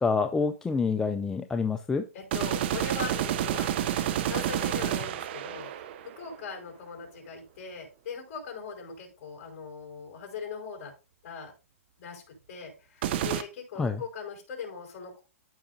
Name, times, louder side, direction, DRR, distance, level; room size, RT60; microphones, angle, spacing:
voice 1, 0.0-2.0 13.8-14.0, left 4 dB, 5° left, 6 dB, 0.4 m, -27 dB
voice 2, 2.1-10.9 11.2-11.5 12.0-15.2, left 5 dB, 40° left, 2 dB, 4.8 m, -40 dB
sound 1, 2.3-6.3 13.0-13.4, right 11 dB, 45° right, 0.6 m, -29 dB
13.5 x 5.0 x 2.6 m, 0.29 s
hypercardioid pair, 150°, 8 cm